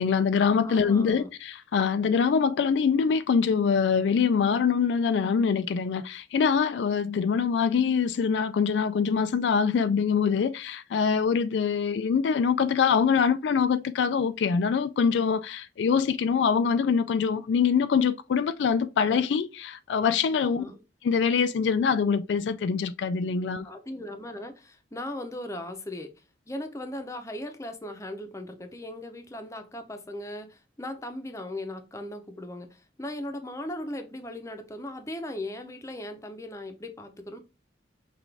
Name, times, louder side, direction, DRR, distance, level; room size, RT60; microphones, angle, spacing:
voice 1, 0.0-20.6 21.0-23.7, left 6 dB, 80° left, 0.3 m, -24 dB
voice 2, 0.6-1.3 20.4-20.8 23.6-26.1 26.5-37.4, left 1 dB, 15° left, 0.7 m, -38 dB
5.8 x 2.5 x 3.4 m
head